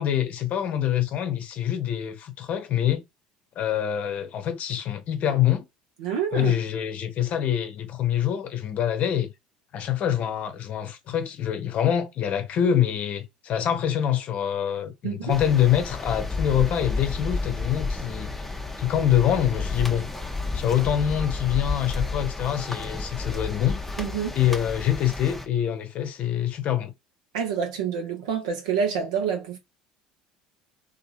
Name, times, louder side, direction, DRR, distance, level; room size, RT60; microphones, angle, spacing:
voice 1, 0.0-3.0 3.6-5.6 6.3-9.3 9.7-18.3 18.8-20.1 20.5-23.8 24.4-26.9, left 10 dB, 50° left, 0.7 m, -25 dB
voice 2, 6.0-6.6 15.0-15.4 24.0-24.4 27.3-29.6, right 7 dB, 80° right, 0.8 m, -27 dB
sound 1, 15.3-25.5, left 3 dB, 5° left, 0.6 m, -31 dB
2.8 x 2.5 x 2.3 m
hypercardioid pair, 70°, 3 cm